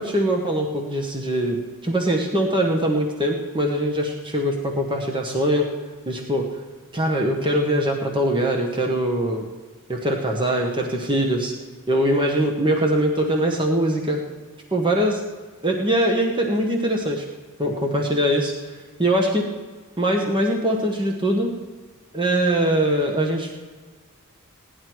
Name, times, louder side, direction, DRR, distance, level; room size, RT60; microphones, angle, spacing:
voice 1, 0.0-5.7 6.1-6.5 6.9-9.5 9.9-11.5 11.9-14.2 14.7-15.2 15.6-17.2 17.6-18.5 19.0-19.4 20.0-21.5 22.1-23.6, right 1 dB, 20° right, 1 dB, 1.2 m, -22 dB
17.0 x 11.0 x 4.6 m, 1.4 s
head